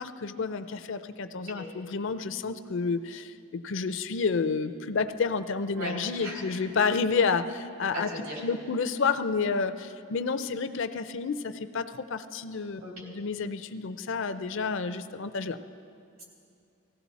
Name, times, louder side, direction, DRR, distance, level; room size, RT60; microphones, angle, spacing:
voice 1, 0.0-8.1 8.4-15.6, left 5 dB, 60° left, 10 dB, 0.5 m, -30 dB
voice 2, 5.7-6.6 7.9-8.4 12.8-13.1 16.2-16.3, right 1 dB, 75° right, -3 dB, 3.7 m, -38 dB
18.5 x 15.5 x 4.1 m, 2.5 s
head